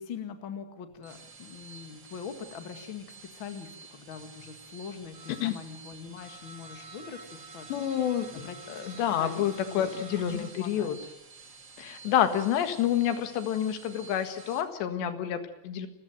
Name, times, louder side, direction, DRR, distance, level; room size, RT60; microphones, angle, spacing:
voice 1, 0.0-7.7 8.3-11.0, left 6 dB, 40° left, 8 dB, 2.0 m, -43 dB
sound 1, 0.9-14.6, right 4 dB, 35° right, 2.1 m, -49 dB
voice 2, 7.7-8.5 8.7-11.0 11.8-15.9, left 10 dB, 85° left, 9 dB, 3.9 m, -28 dB
29.5 x 14.5 x 9.2 m, 0.84 s
omnidirectional pair, 4.9 m